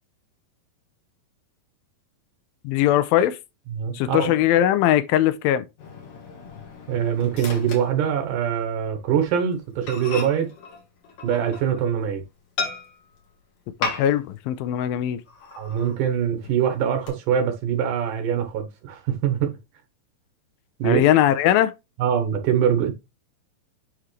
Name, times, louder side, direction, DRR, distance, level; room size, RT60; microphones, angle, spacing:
voice 1, 2.6-3.4 3.9-5.7 13.8-15.2 20.8-21.7, left 12 dB, 90° left, 2.4 m, -20 dB
voice 2, 3.7-4.3 6.9-10.5 11.2-12.2 15.6-19.6 20.8-21.0 22.0-22.9, right 8 dB, 70° right, 2.5 m, -23 dB
Microwave oven, 5.8-8.7 9.0-9.2 9.5-9.6 9.9-11.9 12.6-13.2 13.8-14.4 14.7-14.8 15.3-16.0 16.4-17.1, left 4 dB, 55° left, 2.8 m, -35 dB
9.7 x 3.7 x 3.2 m
omnidirectional pair, 4.2 m